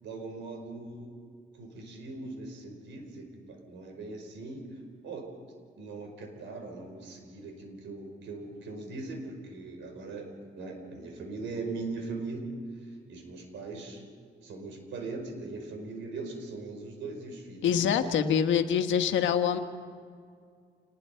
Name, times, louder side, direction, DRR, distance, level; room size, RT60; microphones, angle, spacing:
voice 1, 0.0-1.1 1.5-4.8 5.0-5.3 5.8-10.3 10.5-12.5 13.1-14.0 14.4-18.3, right 3 dB, 80° right, 4 dB, 5.0 m, -40 dB
voice 2, 17.6-19.6, left 8 dB, 85° left, 8 dB, 1.4 m, -25 dB
28.0 x 20.0 x 5.7 m, 2.2 s
cardioid pair, 145°, 19 cm